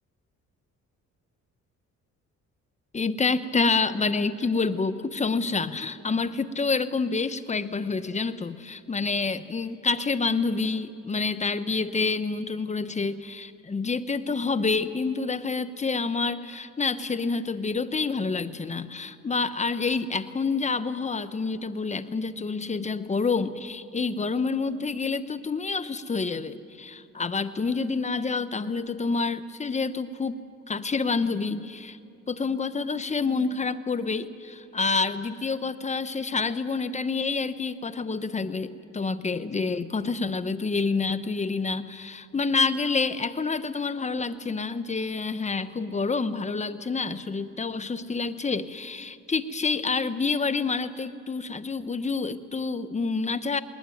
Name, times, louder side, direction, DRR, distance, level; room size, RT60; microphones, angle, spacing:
voice 1, 2.9-30.4 30.7-32.0 32.3-53.6, left 4 dB, 25° left, 12 dB, 0.9 m, -28 dB
20.0 x 19.5 x 9.2 m, 2.4 s
cardioid pair, 90°, 30 cm